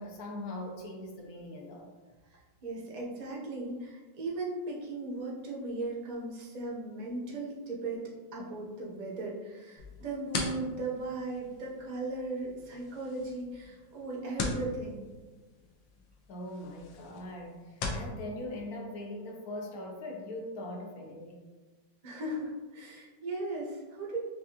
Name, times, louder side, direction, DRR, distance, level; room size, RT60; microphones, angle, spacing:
voice 1, 0.0-1.9 16.3-21.4, left 1 dB, 65° left, 0 dB, 1.1 m, -41 dB
voice 2, 2.6-15.0 22.0-24.2, right 2 dB, 45° right, -4 dB, 0.5 m, -37 dB
sound 1, 9.8-18.1, left 3 dB, 85° left, 1.4 m, -41 dB
6.0 x 2.4 x 2.8 m, 1.3 s
omnidirectional pair, 2.0 m